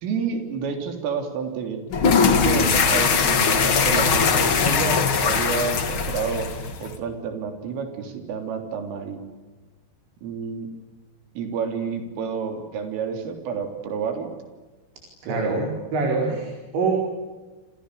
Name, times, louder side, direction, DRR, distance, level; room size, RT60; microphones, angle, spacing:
voice 1, 0.0-1.8 2.3-6.5 6.8-9.2 10.2-10.7 11.4-14.3 15.3-15.6 16.3-16.4, right 6 dB, 80° right, 5 dB, 6.1 m, -29 dB
sound 1, 1.9-6.9, left 5 dB, 60° left, 1.3 m, -20 dB
voice 2, 15.2-16.9, right 3 dB, 65° right, 1 dB, 6.7 m, -25 dB
29.5 x 28.0 x 6.9 m, 1.3 s
omnidirectional pair, 5.7 m